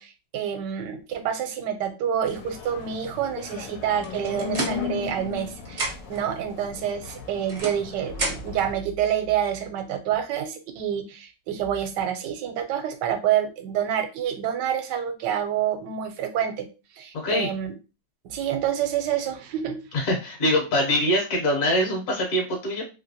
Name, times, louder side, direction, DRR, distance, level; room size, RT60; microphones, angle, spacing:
voice 1, 0.0-16.7 17.0-17.7 18.3-19.8, right 9 dB, 85° right, 7 dB, 1.2 m, -28 dB
sound 1, 2.3-8.8, left 6 dB, 85° left, 1.3 m, -37 dB
sound 2, 4.0-5.4 5.6-6.3 7.0-8.7, right 2 dB, 45° right, 0.6 m, -32 dB
voice 2, 17.1-17.5 19.9-22.8, left 1 dB, 60° left, 1 dB, 1.2 m, -23 dB
3.0 x 2.8 x 2.7 m, 0.31 s
omnidirectional pair, 1.9 m